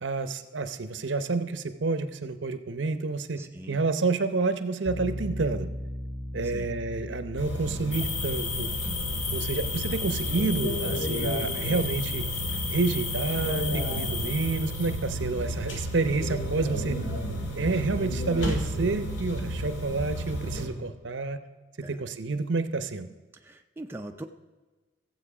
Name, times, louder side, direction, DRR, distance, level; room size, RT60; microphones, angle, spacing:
voice 1, 0.0-5.7 6.3-8.7 9.3-12.2 12.7-17.0 17.6-21.4 21.8-23.1, right 3 dB, 70° right, 10 dB, 0.8 m, -29 dB
voice 2, 3.4-3.8 6.4-6.7 21.8-21.9 23.4-24.3, right 1 dB, 10° right, 4 dB, 0.4 m, -41 dB
sound 1, 4.9-13.7, left 1 dB, 60° left, 4.3 m, -40 dB
sound 2, 7.4-20.6, right 1 dB, 80° left, 2.2 m, -32 dB
sound 3, 7.9-15.2, left 5 dB, 40° left, 1.1 m, -34 dB
15.0 x 7.6 x 4.9 m, 1.3 s
head